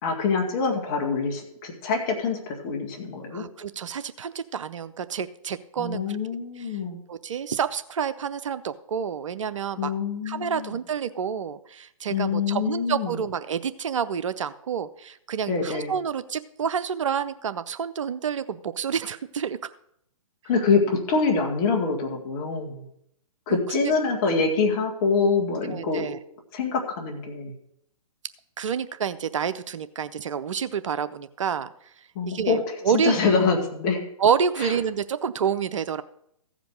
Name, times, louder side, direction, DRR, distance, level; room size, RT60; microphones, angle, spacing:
voice 1, 0.0-3.4 5.8-7.0 9.8-10.8 12.1-13.2 15.5-15.9 20.5-22.8 23.5-26.1 26.5-27.5 32.2-32.6 32.9-34.0 34.6-34.7, left 4 dB, 35° left, 1 dB, 2.4 m, -25 dB
voice 2, 3.3-6.2 6.6-6.7 7.1-9.9 10.3-19.6 23.7-23.9 25.7-26.2 28.6-31.7 32.2-33.1 34.2-36.0, right 7 dB, 60° right, 13 dB, 0.6 m, -28 dB
15.0 x 5.2 x 6.4 m, 0.72 s
figure-of-eight pair, 125°, 19 cm